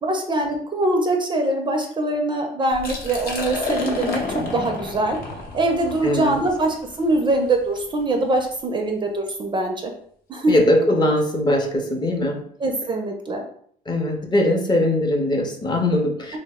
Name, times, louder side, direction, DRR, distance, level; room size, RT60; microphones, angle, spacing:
voice 1, 0.0-4.2 4.5-5.2 5.5-9.9 10.3-10.5 12.6-13.4, right 2 dB, 30° right, 3 dB, 0.4 m, -23 dB
Liquid, 2.7-8.5, left 2 dB, 60° left, 0.7 m, -31 dB
voice 2, 6.0-6.4 10.5-12.4 13.9-16.4, left 1 dB, 25° left, 2 dB, 0.6 m, -20 dB
2.8 x 2.0 x 3.5 m, 0.62 s
cardioid pair, 110°, 17 cm